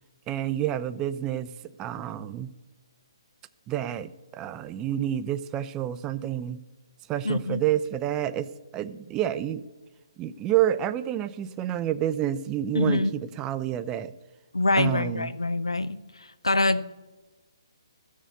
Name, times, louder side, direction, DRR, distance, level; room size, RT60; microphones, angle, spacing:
voice 1, 0.3-1.5 1.8-2.5 3.7-6.6 7.1-8.5 8.7-9.6 10.2-14.1 14.7-15.3, right 11 dB, 20° right, 14 dB, 0.5 m, -29 dB
voice 2, 7.2-7.6 12.7-13.1 14.5-16.0 16.4-16.9, left 2 dB, 90° left, 15 dB, 0.6 m, -24 dB
13.5 x 6.6 x 7.8 m, 1.1 s
figure-of-eight pair, 135°, 3 cm